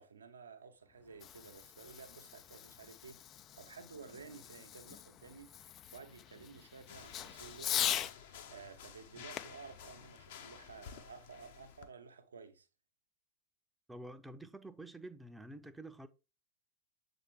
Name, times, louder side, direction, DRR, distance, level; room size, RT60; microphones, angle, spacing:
voice 1, 0.0-12.7, right 5 dB, 70° right, 0.8 m, -54 dB
Fireworks, 0.9-8.2 9.3-11.0, left 11 dB, 30° left, 0.3 m, -42 dB
sound 1, 6.8-11.9, left 8 dB, 55° left, 0.8 m, -52 dB
voice 2, 13.9-16.1, right 1 dB, 5° right, 0.6 m, -49 dB
7.3 x 4.0 x 3.5 m
figure-of-eight pair, 90°, 0 cm